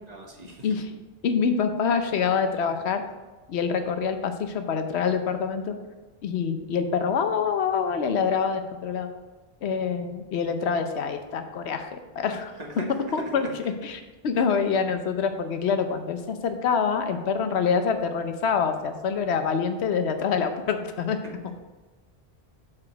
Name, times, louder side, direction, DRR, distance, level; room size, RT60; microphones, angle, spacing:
voice 1, 0.1-0.8 12.6-13.5 21.2-21.3, right 1 dB, 40° right, 1 dB, 1.2 m, -39 dB
voice 2, 1.2-3.0 3.5-5.8 6.2-9.1 9.6-12.5 13.1-13.5 13.8-21.2, left 6 dB, 85° left, 8 dB, 1.0 m, -26 dB
6.1 x 4.9 x 5.9 m, 1.3 s
omnidirectional pair, 1.1 m